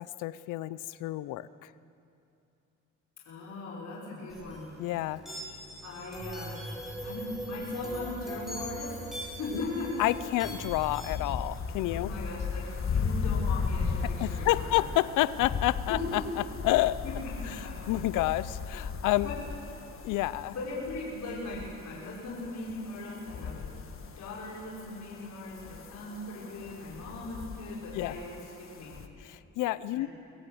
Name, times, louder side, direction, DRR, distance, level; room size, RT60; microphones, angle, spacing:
voice 1, 0.0-1.7 4.8-5.2 10.0-12.1 14.2-16.2 16.6-17.0 17.5-17.6 17.9-19.3 20.0-20.5 27.9-28.1 29.2-30.1, left 16 dB, 90° left, 17 dB, 0.6 m, -29 dB
voice 2, 3.2-4.7 5.8-6.6 7.0-9.0 9.4-10.1 11.0-11.2 11.9-14.9 15.9-16.2 17.4-17.7 19.2-19.3 20.5-23.7 24.0-28.4 28.7-28.9 29.9-30.1, left 2 dB, 70° left, -6 dB, 5.9 m, -39 dB
sound 1, 4.3-11.2, right 1 dB, ahead, 7.1 m, -40 dB
sound 2, 10.0-29.1, left 5 dB, 45° left, 1.4 m, -37 dB
24.5 x 17.0 x 7.8 m, 2.7 s
cardioid pair, 90°, 30 cm